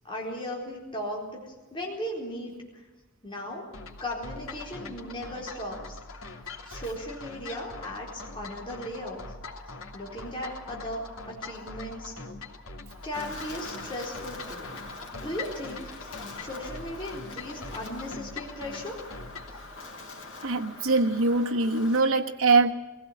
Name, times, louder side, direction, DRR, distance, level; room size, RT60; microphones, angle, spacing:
voice 1, 0.0-2.5 3.2-3.6 4.0-6.0 6.7-9.2 9.9-12.1 13.0-14.8 15.1-16.1 16.4-19.0, equal, 25° left, -2 dB, 4.2 m, -37 dB
sound 1, 3.7-19.6, left 3 dB, 85° left, 2.9 m, -42 dB
Wind, 13.1-22.0, left 2 dB, 65° left, 5.1 m, -44 dB
voice 2, 20.4-22.7, right 3 dB, 85° right, 2 dB, 1.5 m, -23 dB
22.5 x 16.5 x 8.8 m, 1.2 s
head